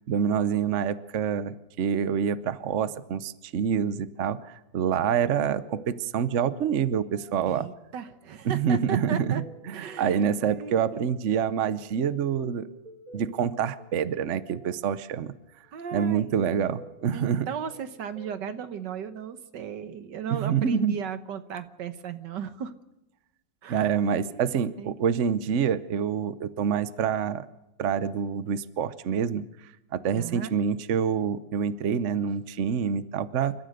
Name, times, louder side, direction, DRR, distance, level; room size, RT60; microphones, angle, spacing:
voice 1, 0.1-7.7 8.4-12.7 13.1-15.3 15.9-17.5 20.3-21.0 23.7-27.5 27.8-29.4 29.9-33.5, right 7 dB, 50° right, 14 dB, 1.0 m, -27 dB
sound 1, 4.8-19.6, right 2 dB, 20° right, 4.6 m, -51 dB
voice 2, 7.5-9.4 9.7-11.0 15.7-16.3 17.1-22.7 23.6-24.5 24.8-25.0 30.1-30.5, right 7 dB, 80° right, 11 dB, 1.8 m, -36 dB
29.0 x 13.5 x 6.6 m, 0.94 s
omnidirectional pair, 1.9 m